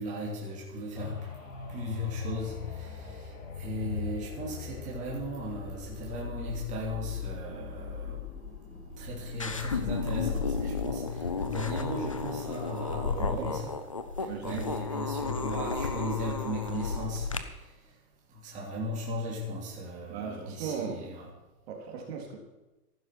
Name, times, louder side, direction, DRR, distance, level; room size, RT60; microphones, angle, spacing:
voice 1, 0.0-1.4 1.7-8.2 9.0-13.7 14.2-17.9 18.3-21.3, left 1 dB, 15° right, -4 dB, 3.1 m, -37 dB
sound 1, 0.9-14.6 15.1-15.2, left 6 dB, 55° left, 6.1 m, -41 dB
sound 2, 9.4-17.4, left 4 dB, 25° left, 0.4 m, -33 dB
voice 2, 13.1-13.6 14.2-14.6 20.1-21.0 21.7-22.4, right 6 dB, 40° right, 1 dB, 3.4 m, -37 dB
14.5 x 12.0 x 6.1 m, 1.1 s
hypercardioid pair, 160°, 48 cm